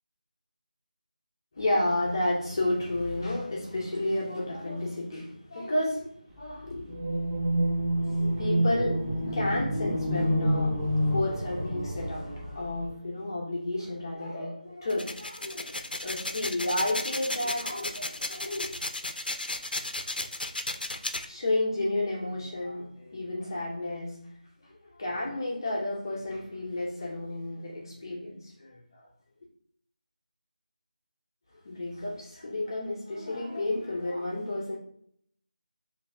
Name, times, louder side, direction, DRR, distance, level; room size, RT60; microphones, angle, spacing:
voice 1, 1.5-7.0 8.0-18.8 21.2-24.3 24.7-29.1 31.6-34.8, left 1 dB, 30° left, 0.6 m, -32 dB
sound 1, 6.9-12.9, equal, 15° right, 0.5 m, -28 dB
sound 2, 14.9-21.3, left 2 dB, 85° left, 0.5 m, -34 dB
4.9 x 2.5 x 2.6 m
figure-of-eight pair, 170°, 5 cm